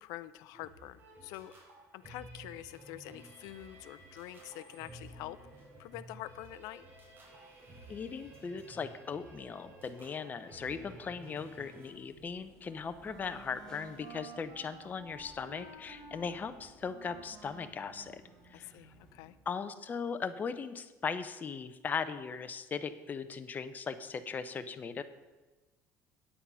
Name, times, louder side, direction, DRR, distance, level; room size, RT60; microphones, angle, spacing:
voice 1, 0.0-1.5 1.9-5.4 5.8-6.8 18.5-19.4, left 15 dB, 80° left, 14 dB, 0.4 m, -46 dB
sound 1, 0.5-11.9, right 1 dB, 35° right, 4.1 m, -53 dB
sound 2, 3.0-19.4, left 2 dB, 15° left, 2.1 m, -63 dB
voice 2, 7.9-18.2 18.5-18.7 19.5-25.0, left 6 dB, 30° left, 10 dB, 0.7 m, -38 dB
Wind instrument woodwind instrument, 12.1-19.2, right 3 dB, 60° right, 2.3 m, -53 dB
8.8 x 8.5 x 5.5 m, 1.2 s
cardioid pair, 120°, 6 cm